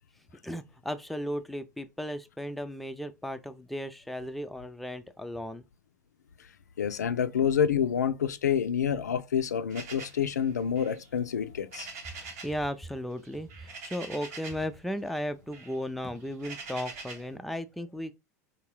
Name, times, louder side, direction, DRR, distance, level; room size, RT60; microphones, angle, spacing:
voice 1, 0.4-5.7 12.1-18.1, equal, ahead, 0.4 m, -35 dB
voice 2, 6.8-11.9, left 8 dB, 80° left, 0.4 m, -28 dB
sound 1, 9.7-12.6 12.9-14.7 15.1-17.3, right 4 dB, 65° right, 0.9 m, -44 dB
3.6 x 2.7 x 3.0 m
hypercardioid pair, 85°, 9 cm